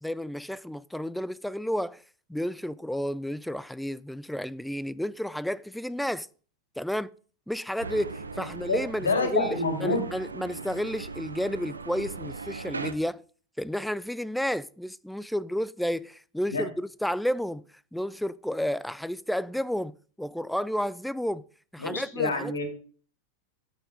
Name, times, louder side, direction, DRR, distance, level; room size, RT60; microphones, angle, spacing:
voice 1, 0.0-2.0 2.3-6.3 6.8-7.1 7.5-13.2 13.6-17.7 17.9-21.4 21.7-22.5, equal, ahead, 0.4 m, -31 dB
sound 1, 7.8-12.9, right 4 dB, 75° right, 0.7 m, -39 dB
voice 2, 8.7-10.0 16.5-16.7 21.8-22.7, left 3 dB, 70° left, 2.4 m, -27 dB
9.3 x 7.4 x 5.0 m
figure-of-eight pair, 90°, 0 cm